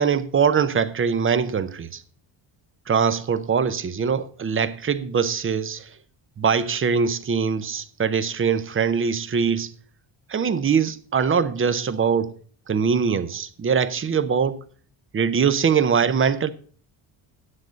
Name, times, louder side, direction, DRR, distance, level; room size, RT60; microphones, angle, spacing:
voice 1, 0.0-2.0 2.9-6.0 6.4-9.7 10.3-12.3 12.7-14.6 15.1-16.5, right 6 dB, 25° right, 0.7 m, -22 dB
9.9 x 7.9 x 5.1 m
cardioid pair, 125°, 47 cm